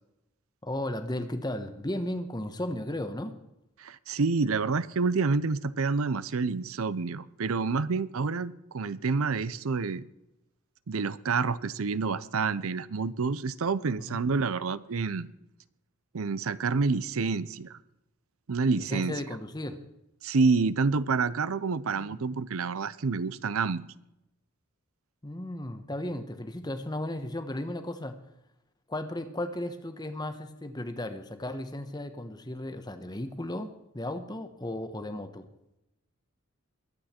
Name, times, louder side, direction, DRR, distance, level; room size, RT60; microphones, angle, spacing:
voice 1, 0.6-3.3 14.1-14.2 18.8-19.8 21.8-22.2 25.2-28.1 28.9-35.5, left 1 dB, 20° left, 9 dB, 1.0 m, -35 dB
voice 2, 3.8-10.0 10.9-15.3 16.1-17.8 18.5-19.1 20.2-23.8, right 4 dB, 70° right, 17 dB, 0.6 m, -28 dB
22.5 x 8.8 x 4.4 m, 0.88 s
head